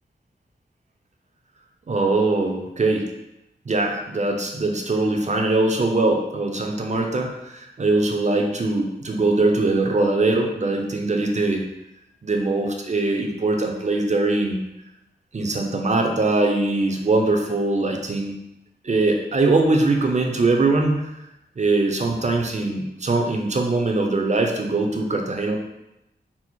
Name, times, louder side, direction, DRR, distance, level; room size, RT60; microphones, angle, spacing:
voice 1, 1.9-3.1 3.7-11.6 12.2-14.6 15.3-18.3 18.8-21.1 21.6-25.6, right 2 dB, 40° right, 2 dB, 0.6 m, -22 dB
4.2 x 2.0 x 4.4 m, 0.90 s
wide cardioid pair, 100°, 18 cm